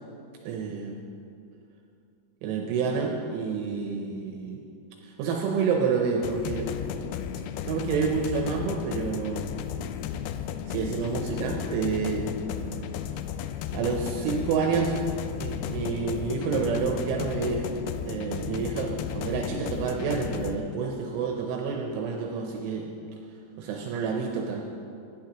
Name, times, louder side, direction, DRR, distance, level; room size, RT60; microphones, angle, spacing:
voice 1, 0.4-1.0 2.4-4.6 5.0-6.7 7.7-9.5 10.7-12.4 13.7-15.0 15.4-17.7 18.1-22.9 23.6-24.6, right 5 dB, 80° right, 1 dB, 3.0 m, -28 dB
sound 1, 6.2-20.6, left 9 dB, 85° left, 2.7 m, -34 dB
16.5 x 10.0 x 2.9 m, 2.5 s
omnidirectional pair, 5.9 m